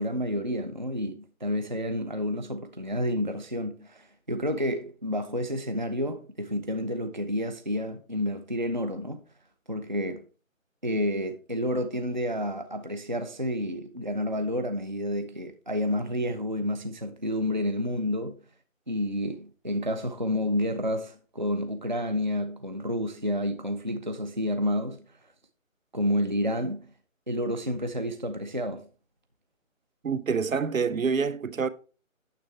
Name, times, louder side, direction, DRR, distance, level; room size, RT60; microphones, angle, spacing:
voice 1, 0.0-9.2 9.7-10.2 10.8-18.4 18.9-25.0 25.9-26.9 27.3-28.9, equal, 35° right, 0.5 m, -30 dB
voice 2, 30.0-31.7, right 5 dB, 75° right, 0.9 m, -27 dB
9.3 x 7.0 x 3.2 m
hypercardioid pair, 175°, 41 cm